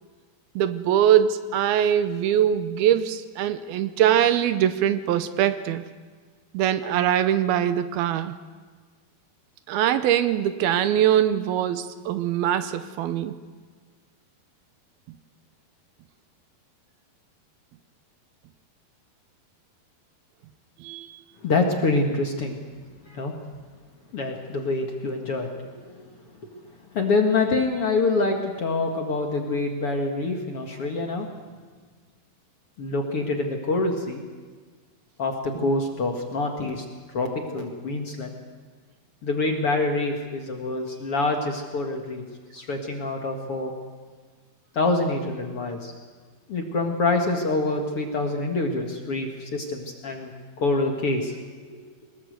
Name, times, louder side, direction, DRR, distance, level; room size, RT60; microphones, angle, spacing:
voice 1, 0.6-5.8 6.5-8.3 9.7-13.3 20.8-21.1, right 10 dB, 80° right, 12 dB, 2.6 m, -22 dB
voice 2, 21.4-22.6 23.1-23.3 24.1-25.5 26.0-26.1 26.5-26.6 26.9-31.3 32.8-34.2 35.2-36.8 37.1-38.3 39.2-42.2 42.5-43.7 44.7-45.9 46.5-50.3 50.6-51.4 51.7-51.8, left 3 dB, 45° left, 2 dB, 2.1 m, -26 dB
23.5 x 20.0 x 8.0 m, 1.5 s
omnidirectional pair, 4.6 m